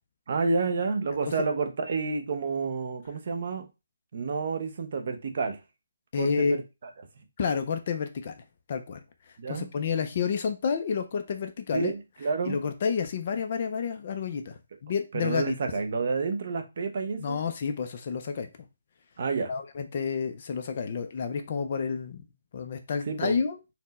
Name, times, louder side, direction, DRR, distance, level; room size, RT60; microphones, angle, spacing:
voice 1, 0.3-3.7 4.1-5.6 6.2-6.6 9.4-9.7 11.7-12.6 15.1-17.4 19.2-19.5 23.1-23.4, right 4 dB, 35° right, 0.5 m, -29 dB
voice 2, 6.1-6.6 7.4-8.3 8.7-9.0 9.3-11.9 12.5-15.5 17.2-18.5 19.5-22.2 22.5-23.6, left 6 dB, 30° left, 0.3 m, -30 dB
4.2 x 2.1 x 3.9 m
hypercardioid pair, 180°, 0 cm